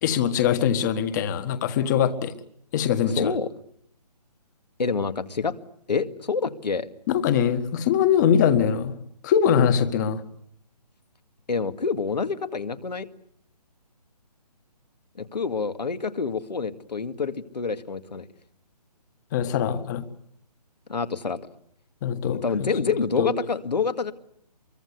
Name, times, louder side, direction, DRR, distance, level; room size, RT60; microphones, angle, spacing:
voice 1, 0.0-2.3 2.7-3.3 7.1-8.9 9.2-10.2 19.3-20.0 22.0-22.7 23.2-23.3, left 8 dB, 25° left, 10 dB, 1.7 m, -22 dB
voice 2, 3.2-3.5 4.8-5.5 5.9-6.9 11.5-13.1 15.2-18.3 20.9-21.4 22.3-24.1, left 5 dB, 75° left, 8 dB, 2.2 m, -27 dB
24.5 x 23.5 x 8.3 m, 0.69 s
hypercardioid pair, 155°, 21 cm